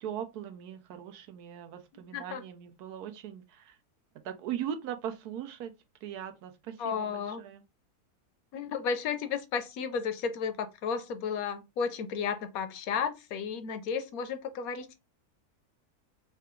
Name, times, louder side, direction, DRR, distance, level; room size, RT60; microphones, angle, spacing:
voice 1, 0.0-3.8 4.2-5.7 6.0-7.6, right 9 dB, 85° right, 1.2 m, -39 dB
voice 2, 6.8-7.4 8.5-14.9, left 6 dB, 75° left, 1.0 m, -33 dB
3.7 x 2.2 x 3.7 m
omnidirectional pair, 1.6 m